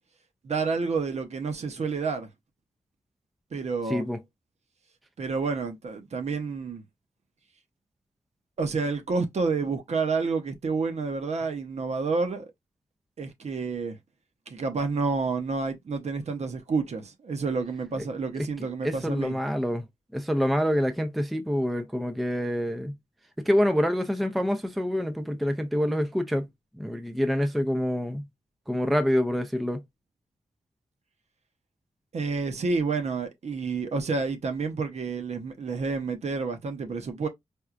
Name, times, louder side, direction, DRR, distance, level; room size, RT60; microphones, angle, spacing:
voice 1, 0.4-2.3 3.5-4.0 5.2-6.8 8.6-12.5 13.2-14.0 14.5-19.4 32.1-37.3, right 4 dB, 55° right, 0.7 m, -29 dB
voice 2, 18.8-19.8 20.1-23.0 23.5-26.5 26.8-28.2 28.7-29.8, equal, ahead, 0.4 m, -26 dB
4.4 x 2.3 x 2.4 m
wide cardioid pair, 120°, 13 cm